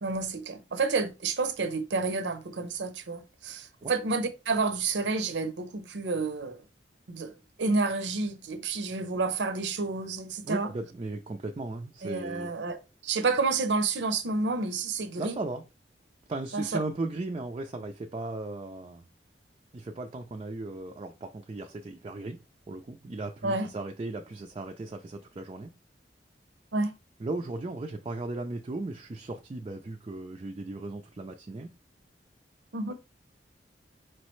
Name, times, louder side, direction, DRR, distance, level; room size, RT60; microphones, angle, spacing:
voice 1, 0.0-6.6 7.1-7.3 7.6-10.7 12.0-15.4 16.5-16.6 23.4-23.7 26.7-26.9 32.7-32.9, right 3 dB, 75° right, 0.6 m, -30 dB
voice 2, 10.4-12.5 15.2-15.6 16.3-19.0 19.7-22.4 22.7-25.7 27.2-31.7, right 2 dB, 30° right, 0.4 m, -36 dB
4.6 x 3.1 x 3.1 m
head